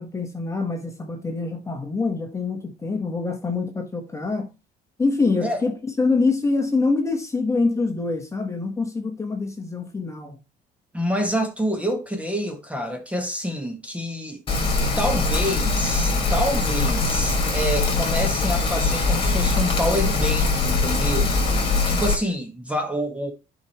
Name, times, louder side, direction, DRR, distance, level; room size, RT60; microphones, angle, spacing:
voice 1, 0.0-4.5 5.0-10.4, left 3 dB, 15° left, 1.5 m, -25 dB
voice 2, 10.9-14.4 15.0-21.4 21.9-23.3, equal, 10° right, 1.7 m, -27 dB
Rain, 14.5-22.1, left 3 dB, 35° left, 2.9 m, -22 dB
11.0 x 5.1 x 3.2 m
cardioid pair, 110°, 17 cm